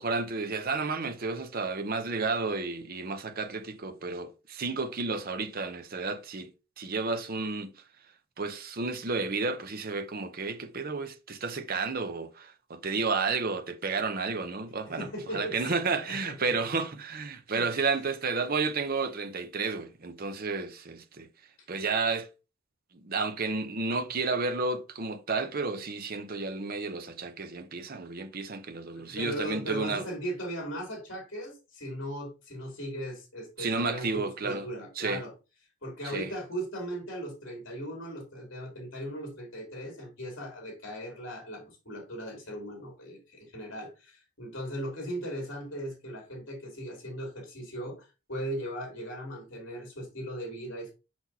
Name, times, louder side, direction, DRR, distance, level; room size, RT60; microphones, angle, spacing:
voice 1, 0.0-6.5 6.8-7.7 8.4-21.3 21.7-22.3 22.9-30.0 33.6-34.7 35.0-35.2 36.0-36.3, right 4 dB, 45° right, 0.7 m, -31 dB
voice 2, 14.8-15.6 16.0-16.5 17.5-17.8 28.9-35.3 35.8-50.9, equal, 60° left, 3.0 m, -38 dB
6.1 x 6.0 x 2.8 m
head